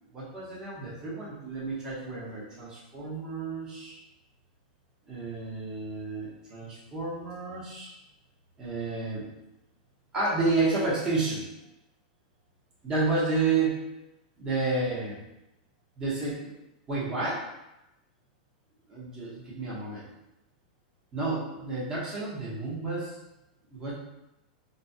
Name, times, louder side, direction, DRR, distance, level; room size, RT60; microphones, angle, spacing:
voice 1, 0.1-3.9 5.1-7.9 8.6-9.2 10.1-11.4 12.8-13.8 14.4-15.2 16.0-16.5 16.9-17.4 18.9-20.0 21.1-23.1 23.7-23.9, right 3 dB, 15° right, -7 dB, 0.9 m, -30 dB
3.1 x 2.2 x 2.7 m, 0.92 s
supercardioid pair, 165°, 4 cm